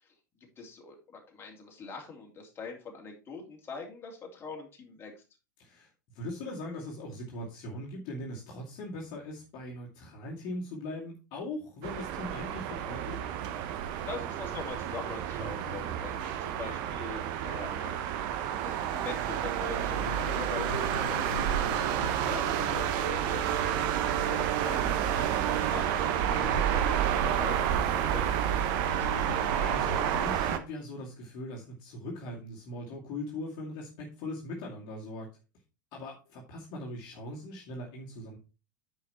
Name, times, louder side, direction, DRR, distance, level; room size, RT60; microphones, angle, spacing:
voice 1, 0.6-5.1 14.0-18.2 18.6-29.2, left 4 dB, 20° left, 0 dB, 2.9 m, -43 dB
voice 2, 5.6-5.9 6.1-13.2 15.6-15.9 26.4-26.6 29.5-35.3 35.9-38.4, left 1 dB, 45° left, -2 dB, 2.3 m, -40 dB
sound 1, 11.8-30.6, right 10 dB, 45° right, 1.0 m, -30 dB
sound 2, 19.7-30.2, left 2 dB, 85° left, 0.8 m, -42 dB
9.7 x 5.2 x 4.3 m, 0.31 s
figure-of-eight pair, 85°, 11 cm